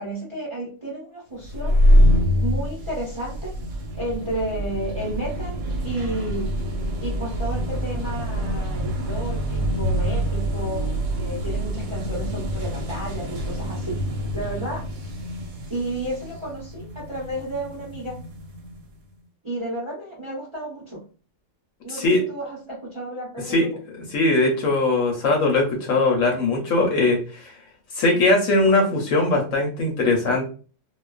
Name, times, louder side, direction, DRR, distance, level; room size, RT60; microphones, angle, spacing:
voice 1, 0.0-1.8 2.4-3.5 3.9-6.6 7.0-10.9 11.2-14.9 15.7-18.2 19.4-21.1 21.8-23.7, right 1 dB, 30° right, -5 dB, 0.6 m, -32 dB
sound 1, 1.4-18.8, equal, 90° right, 1.1 m, -25 dB
voice 2, 21.9-22.2 23.5-23.7 24.1-27.6 27.9-30.5, left 2 dB, 65° left, 1 dB, 0.9 m, -20 dB
2.5 x 2.3 x 2.2 m, 0.38 s
omnidirectional pair, 1.7 m